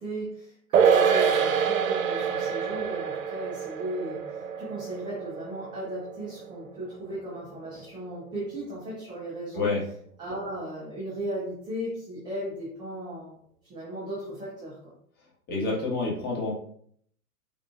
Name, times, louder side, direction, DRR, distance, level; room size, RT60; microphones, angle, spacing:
voice 1, 0.0-9.7 10.2-13.3 13.7-14.9, right 1 dB, 10° right, -8 dB, 0.5 m, -36 dB
sound 1, 0.7-7.4 7.7-7.8, right 7 dB, 60° right, 0.5 m, -26 dB
voice 2, 15.5-16.6, left 3 dB, 20° left, -4 dB, 1.2 m, -28 dB
4.0 x 2.5 x 2.3 m, 0.63 s
figure-of-eight pair, 110°, 45 cm